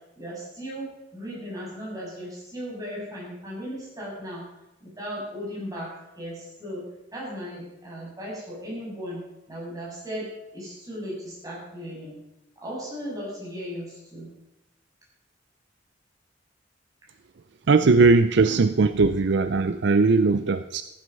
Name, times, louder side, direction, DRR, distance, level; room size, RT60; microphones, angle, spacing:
voice 1, 0.2-4.4 4.8-6.8 7.1-9.2 9.5-12.2 12.6-14.3, equal, 20° right, -5 dB, 6.6 m, -36 dB
voice 2, 17.7-20.8, right 4 dB, 65° right, 11 dB, 0.5 m, -19 dB
14.5 x 11.0 x 5.4 m, 0.92 s
head